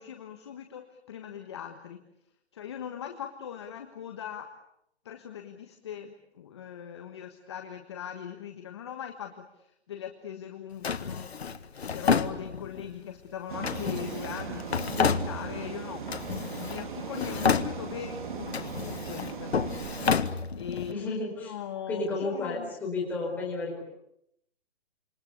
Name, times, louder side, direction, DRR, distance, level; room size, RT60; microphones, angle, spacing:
voice 1, 0.0-2.0 2.5-4.5 5.0-19.6 20.6-22.7, left 9 dB, 25° left, 5 dB, 1.5 m, -40 dB
Drawer open or close, 10.8-12.9 13.6-15.7 16.1-16.9 17.1-18.1 18.5-20.9, left 6 dB, 70° left, 1.9 m, -30 dB
sound 1, 13.5-20.1, right 5 dB, 45° right, 3.7 m, -38 dB
voice 2, 20.9-21.5 21.9-23.8, left 3 dB, 5° left, -3 dB, 4.7 m, -32 dB
27.5 x 25.0 x 8.3 m, 0.78 s
hypercardioid pair, 175°, 33 cm